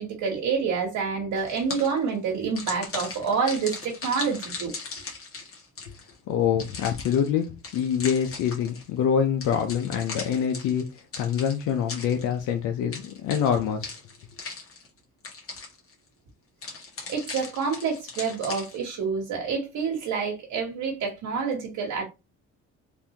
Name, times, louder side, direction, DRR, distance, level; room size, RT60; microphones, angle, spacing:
voice 1, 0.0-4.7 17.1-22.0, right 5 dB, 80° right, 1.1 m, -28 dB
sound 1, 1.4-2.1 2.6-6.1 6.6-8.9 9.4-12.5 12.9-15.0 15.2-15.9 16.6-18.9, left 4 dB, 45° left, 1.4 m, -38 dB
voice 2, 6.3-13.9, left 8 dB, 85° left, 0.6 m, -25 dB
3.4 x 2.6 x 2.8 m
cardioid pair, 90°, 30 cm